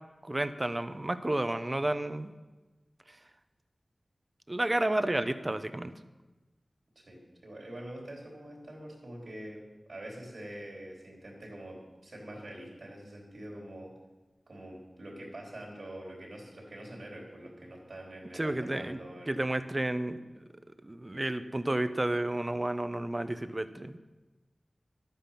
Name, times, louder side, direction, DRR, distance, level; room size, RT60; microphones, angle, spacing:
voice 1, 0.2-2.3 4.5-5.9 18.3-19.0 19.3-20.2 20.8-24.0, right 1 dB, 30° right, 11 dB, 0.8 m, -31 dB
voice 2, 7.0-13.9 14.5-19.4, right 1 dB, 75° right, -1 dB, 3.8 m, -45 dB
12.0 x 9.1 x 5.8 m, 1.2 s
wide cardioid pair, 50°, 0 cm